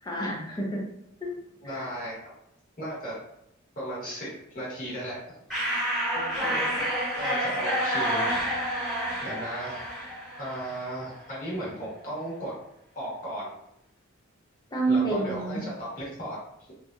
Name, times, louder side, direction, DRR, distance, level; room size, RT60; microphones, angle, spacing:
voice 1, 0.0-0.9 1.2-1.4 1.6-1.9 6.2-7.0 14.7-15.6, right 3 dB, 20° left, -3 dB, 0.6 m, -30 dB
voice 2, 1.6-2.2 2.8-3.1 3.8-5.3 7.1-8.4 9.2-10.0 10.4-12.5 12.9-13.5 14.9-16.7, right 1 dB, 40° left, -6 dB, 1.3 m, -36 dB
sound 1, 5.5-11.0, equal, ahead, 1.3 m, -29 dB
3.3 x 2.6 x 2.3 m, 0.80 s
head